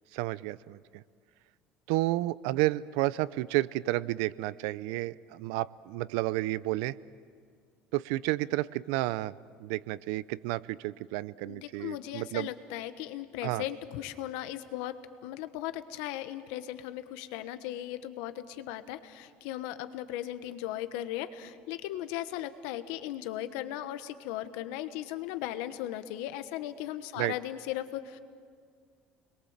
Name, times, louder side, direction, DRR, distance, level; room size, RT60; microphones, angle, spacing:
voice 1, 0.1-1.0 1.9-7.0 7.9-9.3 9.6-12.5 13.4-13.6 27.2-27.3, right 18 dB, 85° right, 19 dB, 0.6 m, -31 dB
voice 2, 11.4-28.2, left 13 dB, 85° left, 11 dB, 1.3 m, -37 dB
29.5 x 22.0 x 7.4 m, 2.1 s
cardioid pair, 155°, 4 cm